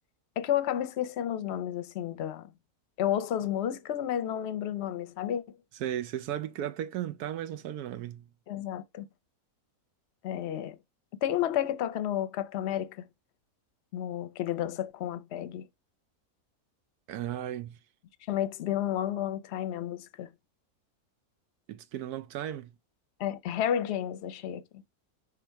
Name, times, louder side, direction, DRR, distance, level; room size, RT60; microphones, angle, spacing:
voice 1, 0.4-2.5 3.0-5.4 8.5-9.1 10.2-10.8 11.2-13.1 13.9-15.7 18.3-20.3 23.2-24.8, left 10 dB, 60° left, 0.8 m, -31 dB
voice 2, 5.8-8.3 17.1-17.8 21.7-22.7, right 11 dB, 85° right, 1.2 m, -35 dB
6.1 x 3.5 x 4.6 m
omnidirectional pair, 1.6 m